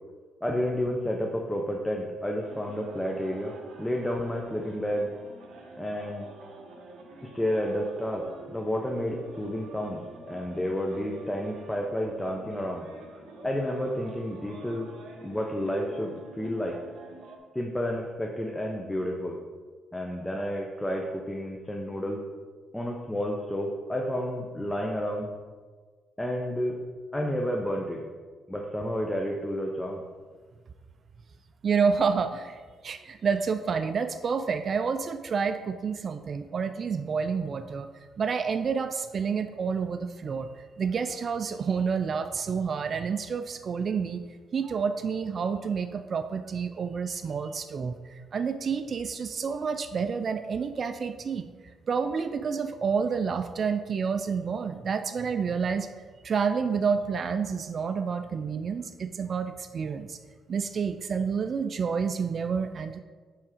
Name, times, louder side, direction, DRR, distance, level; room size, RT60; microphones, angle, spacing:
voice 1, 0.4-3.5 3.8-5.1 5.8-6.3 7.2-10.0 10.3-12.9 13.4-14.9 15.2-16.8 17.5-19.4 19.9-22.2 22.7-25.3 26.2-26.8 27.1-28.0 28.5-30.0, equal, 10° left, 0 dB, 0.7 m, -30 dB
sound 1, 2.4-17.4, right 2 dB, 75° right, 1.0 m, -47 dB
voice 2, 31.6-37.9 38.2-44.2 44.5-51.5 51.9-55.9 56.2-60.2 60.5-63.0, right 6 dB, 50° right, 9 dB, 0.3 m, -29 dB
7.5 x 3.5 x 4.9 m, 1.5 s
cardioid pair, 90°, 0 cm